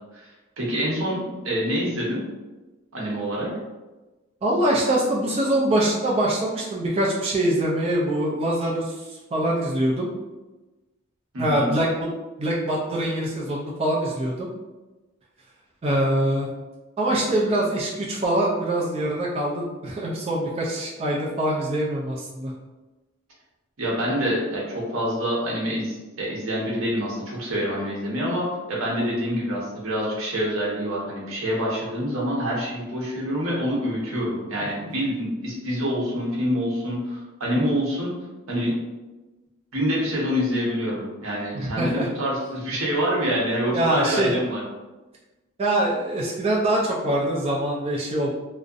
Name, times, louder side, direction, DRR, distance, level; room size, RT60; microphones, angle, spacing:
voice 1, 0.6-2.2 2.9-3.5 11.3-11.7 23.8-38.1 38.5-38.7 39.7-44.6, equal, 80° right, -4 dB, 0.8 m, -26 dB
voice 2, 4.4-10.1 11.4-11.9 12.4-14.5 15.8-16.5 17.0-22.5 34.8-34.9 41.5-42.1 43.7-44.3 45.6-48.3, right 1 dB, 30° right, -4 dB, 0.4 m, -24 dB
2.6 x 2.0 x 2.4 m, 1.1 s
head